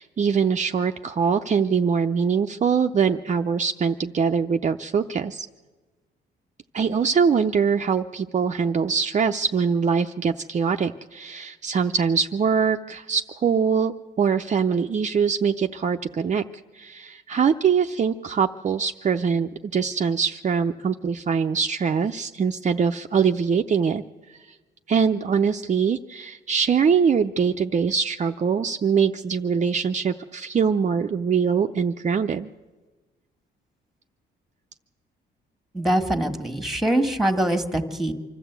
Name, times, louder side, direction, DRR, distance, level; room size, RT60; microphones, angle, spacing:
voice 1, 0.0-5.5 6.7-16.4 16.7-24.0 24.5-24.6 24.9-32.5, right 6 dB, 35° right, 5 dB, 0.6 m, -23 dB
voice 2, 35.7-38.1, right 1 dB, ahead, 7 dB, 1.8 m, -23 dB
25.5 x 13.0 x 8.2 m, 1.3 s
cardioid pair, 90°, 20 cm